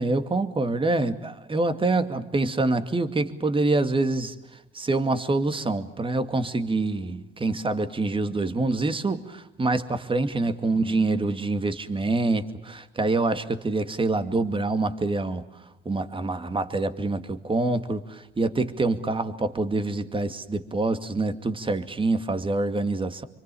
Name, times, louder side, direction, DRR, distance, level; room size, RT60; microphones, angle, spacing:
voice 1, 0.0-23.2, right 2 dB, 25° right, 9 dB, 2.3 m, -26 dB
27.5 x 24.5 x 7.0 m, 0.93 s
cardioid pair, 90°, 20 cm